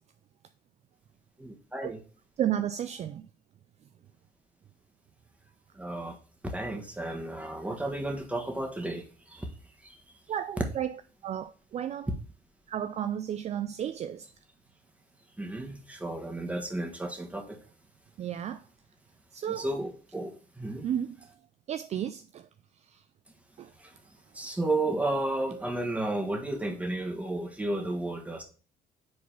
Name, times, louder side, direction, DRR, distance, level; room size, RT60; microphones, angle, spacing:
voice 1, 1.4-2.0 5.8-6.2 6.4-9.5 15.4-17.6 19.5-20.3 20.6-20.9 24.3-28.4, right 2 dB, 10° right, 1.4 m, -32 dB
voice 2, 2.4-3.2 10.3-12.1 12.7-14.3 18.2-18.6 19.3-19.7 20.8-21.3 21.7-22.5 22.8-23.0 23.6-23.7, right 10 dB, 40° right, 0.4 m, -33 dB
5.1 x 4.0 x 5.7 m
cardioid pair, 110°, 17 cm